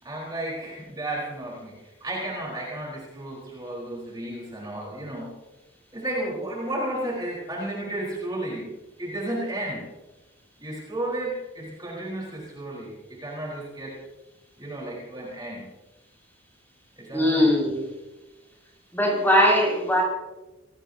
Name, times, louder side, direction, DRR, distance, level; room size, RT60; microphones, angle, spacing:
voice 1, 0.0-5.4 5.9-8.7 9.0-9.9 10.6-14.0 14.6-15.7 17.0-17.5, right 1 dB, 20° right, -4 dB, 4.3 m, -33 dB
voice 2, 17.1-17.8 18.9-20.0, equal, 10° left, -4 dB, 5.9 m, -20 dB
26.0 x 19.0 x 2.8 m, 1.1 s
head